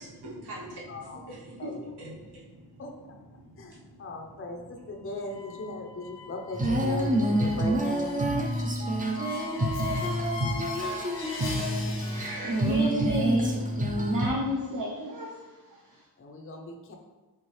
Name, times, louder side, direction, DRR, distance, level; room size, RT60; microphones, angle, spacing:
voice 1, 0.0-6.4, right 1 dB, 70° right, -4 dB, 1.0 m, -45 dB
voice 2, 0.9-1.2 1.6-1.7 2.8-2.9 3.6-8.2 9.7-10.2 10.6-10.9 11.4-12.3 16.2-16.9, left 2 dB, 30° left, 2 dB, 0.5 m, -39 dB
sound 1, 5.2-12.9, left 4 dB, 90° left, 0.8 m, -41 dB
Female singing, 6.5-14.3, right 1 dB, 20° right, 0.5 m, -27 dB
voice 3, 12.1-13.7 14.0-16.0, left 1 dB, 50° right, -3 dB, 0.7 m, -32 dB
4.4 x 3.8 x 3.1 m, 1.2 s
wide cardioid pair, 110°, 41 cm